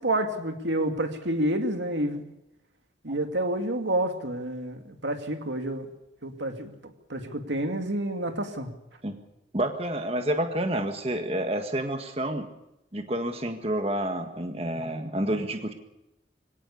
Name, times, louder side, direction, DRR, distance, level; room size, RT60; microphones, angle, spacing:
voice 1, 0.0-2.2 3.0-5.9 6.2-6.7 7.1-8.7, right 1 dB, 85° right, 6 dB, 2.5 m, -29 dB
voice 2, 9.5-12.5 12.9-15.7, right 1 dB, 35° right, 6 dB, 1.8 m, -29 dB
24.5 x 17.5 x 7.0 m, 0.87 s
head